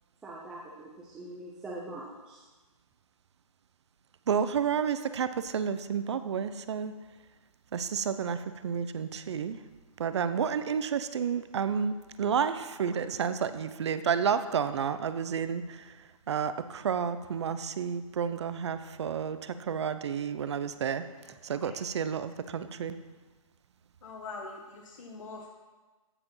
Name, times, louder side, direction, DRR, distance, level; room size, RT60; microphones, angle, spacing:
voice 1, 0.2-2.5, right 2 dB, 5° right, -5 dB, 0.5 m, -43 dB
voice 2, 4.3-6.9 7.7-9.6 10.0-23.0, right 7 dB, 50° right, 12 dB, 0.7 m, -31 dB
voice 3, 24.0-25.5, left 3 dB, 65° left, 1 dB, 1.5 m, -43 dB
15.0 x 5.0 x 5.6 m, 1.3 s
hypercardioid pair, 165°, 18 cm